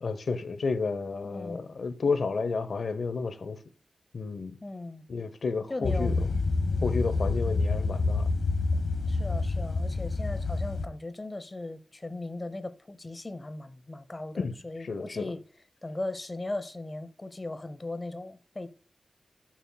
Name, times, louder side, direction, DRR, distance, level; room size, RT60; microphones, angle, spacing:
voice 1, 0.0-3.6 4.1-4.6 5.1-6.3 6.8-8.2 14.4-15.3, left 4 dB, 60° left, 0.8 m, -31 dB
voice 2, 1.2-1.7 4.6-5.0 5.7-6.3 6.6-7.0 7.5-7.6 9.1-15.4 15.8-18.7, left 2 dB, 25° left, 0.6 m, -38 dB
sound 1, 5.8-10.9, left 3 dB, 90° left, 0.8 m, -28 dB
11.5 x 7.3 x 2.2 m
wide cardioid pair, 165°, 0 cm